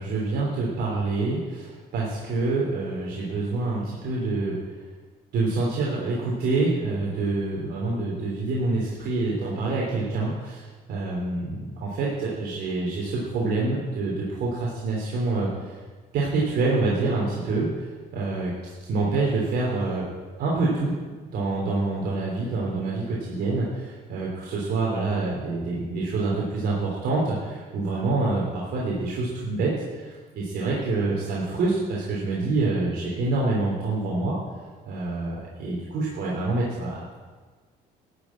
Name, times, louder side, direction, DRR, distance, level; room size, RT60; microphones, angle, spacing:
voice 1, 0.0-4.6 5.3-15.7 16.1-20.1 20.4-21.0 21.3-34.3 34.8-37.1, right 3 dB, 70° right, -4 dB, 3.3 m, -26 dB
13.5 x 7.0 x 8.6 m, 1.4 s
cardioid pair, 110°, 17 cm